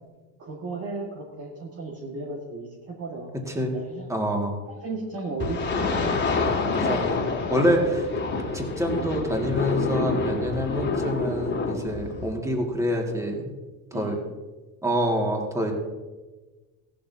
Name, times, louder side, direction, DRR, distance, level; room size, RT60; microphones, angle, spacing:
voice 1, 0.4-3.3 3.7-4.1 4.7-6.2 13.9-14.3, right 3 dB, 35° right, -2 dB, 1.8 m, -35 dB
voice 2, 4.1-4.6 6.7-7.2 7.5-8.1 8.5-13.5 13.9-14.2 14.8-15.7, equal, 5° right, 1 dB, 2.1 m, -26 dB
sound 1, 5.4-12.3, left 4 dB, 25° left, 2.2 m, -27 dB
16.0 x 12.0 x 2.8 m, 1.3 s
supercardioid pair, 105°, 40 cm